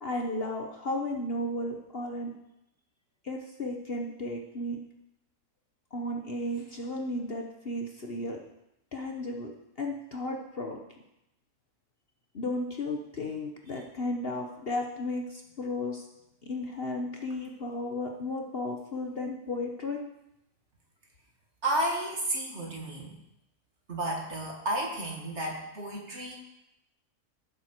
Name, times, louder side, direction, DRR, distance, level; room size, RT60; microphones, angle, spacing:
voice 1, 0.0-2.3 3.2-4.8 5.9-8.4 8.9-9.5 9.8-10.8 12.3-16.1 16.4-20.0, left 1 dB, 40° left, 2 dB, 1.2 m, -34 dB
voice 2, 21.6-23.2 23.9-26.4, right 1 dB, 45° right, -1 dB, 2.3 m, -32 dB
15.0 x 7.6 x 4.5 m, 0.85 s
omnidirectional pair, 1.6 m